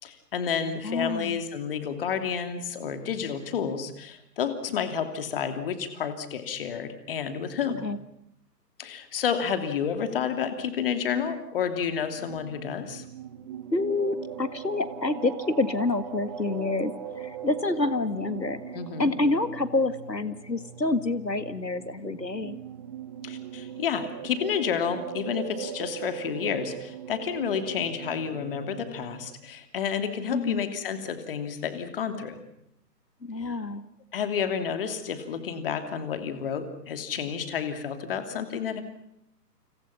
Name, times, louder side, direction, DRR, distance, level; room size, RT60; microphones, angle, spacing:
voice 1, 0.0-7.9 8.8-13.0 18.7-19.1 23.2-32.4 33.4-33.5 34.1-38.8, left 7 dB, 35° left, 8 dB, 2.8 m, -30 dB
voice 2, 0.8-1.4 7.8-8.0 13.7-18.6 19.0-22.6 30.3-30.6 33.2-33.8, left 2 dB, 85° left, 13 dB, 2.1 m, -28 dB
sound 1, 12.0-29.3, right 9 dB, 20° right, 1.3 m, -40 dB
29.0 x 27.0 x 5.8 m, 0.76 s
figure-of-eight pair, 135°, 49 cm